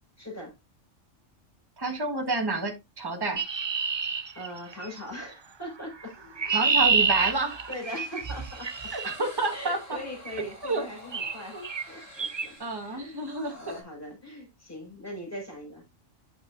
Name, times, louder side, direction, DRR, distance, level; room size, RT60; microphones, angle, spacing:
voice 1, 0.2-0.5 4.3-6.1 7.7-8.7 9.5-11.6 11.9-12.6 12.8-13.2 13.5-15.8, left 1 dB, 10° left, 4.9 m, -40 dB
voice 2, 1.8-3.4 6.5-7.6 8.9-10.0 10.6-10.8 11.5-11.6 12.6-13.8, right 2 dB, 20° right, 1.4 m, -29 dB
Chirp tweet, 3.4-5.0 6.0-9.2 10.3-10.5 11.1-11.4 11.6-11.9 12.2-12.5, right 5 dB, 45° right, 0.3 m, -27 dB
sound 1, 6.0-13.8, left 1 dB, 90° left, 4.0 m, -49 dB
8.8 x 7.3 x 2.5 m
omnidirectional pair, 1.3 m